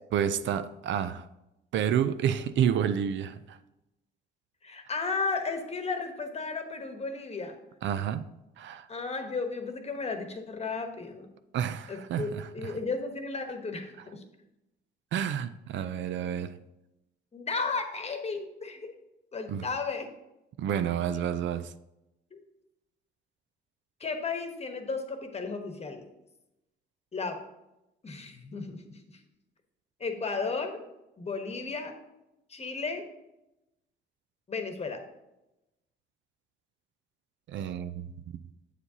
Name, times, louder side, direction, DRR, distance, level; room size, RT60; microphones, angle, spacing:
voice 1, 0.1-1.3 1.7-3.6 7.8-8.9 11.5-12.7 15.1-16.6 19.5-19.7 20.6-21.7 37.5-38.1, right 9 dB, 70° right, 0.4 m, -30 dB
voice 2, 4.6-7.6 8.9-11.3 11.9-14.2 17.3-18.9 19.3-20.1 22.3-22.4 24.0-26.0 27.1-27.4 28.0-29.0 30.0-30.8 31.2-31.9 32.5-33.0 34.5-35.0, left 4 dB, 30° left, 1.1 m, -34 dB
8.1 x 7.2 x 2.8 m
cardioid pair, 90°, 20 cm